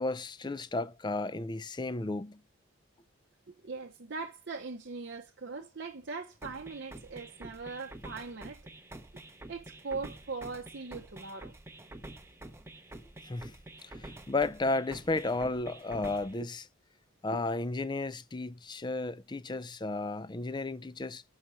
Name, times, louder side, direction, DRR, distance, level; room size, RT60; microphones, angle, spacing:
voice 1, 0.0-2.4 13.2-13.5 13.8-16.6 17.2-21.2, left 2 dB, 20° left, 0.4 m, -33 dB
voice 2, 3.5-8.7 9.5-11.5 17.3-17.4, right 4 dB, 55° right, 0.7 m, -40 dB
sound 1, 6.4-16.4, right 1 dB, 10° right, 0.7 m, -48 dB
6.5 x 5.8 x 4.4 m
head